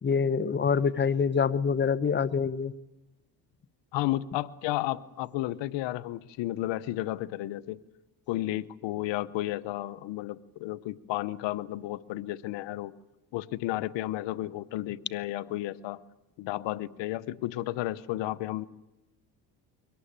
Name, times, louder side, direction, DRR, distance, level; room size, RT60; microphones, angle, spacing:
voice 1, 0.0-2.7, left 6 dB, 25° left, 17 dB, 0.9 m, -26 dB
voice 2, 3.9-7.8 8.3-12.9 13.3-16.0 16.4-18.7, left 15 dB, 80° left, 18 dB, 0.9 m, -32 dB
22.5 x 18.5 x 8.9 m, 1.0 s
cardioid pair, 85°, 43 cm